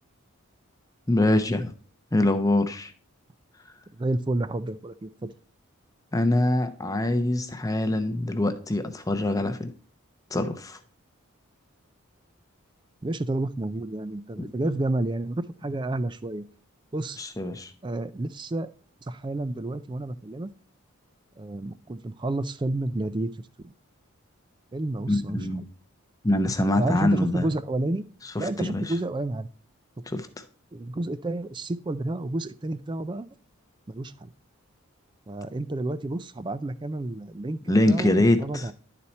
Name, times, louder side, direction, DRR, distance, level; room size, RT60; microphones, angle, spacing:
voice 1, 1.1-1.7 2.1-2.9 6.1-9.7 10.3-10.8 17.2-17.7 25.1-25.6 26.2-27.5 28.3-28.8 30.1-30.3 37.7-38.7, left 1 dB, 15° left, 0.6 m, -24 dB
voice 2, 3.9-5.3 13.0-16.5 16.9-17.2 17.8-18.7 19.0-20.5 21.4-23.3 23.6-23.7 24.7-25.7 26.7-28.1 28.4-29.5 30.7-33.3 33.9-34.3 35.3-37.6 37.9-38.1 38.4-38.7, right 2 dB, 20° right, 0.3 m, -30 dB
11.0 x 4.2 x 4.3 m
head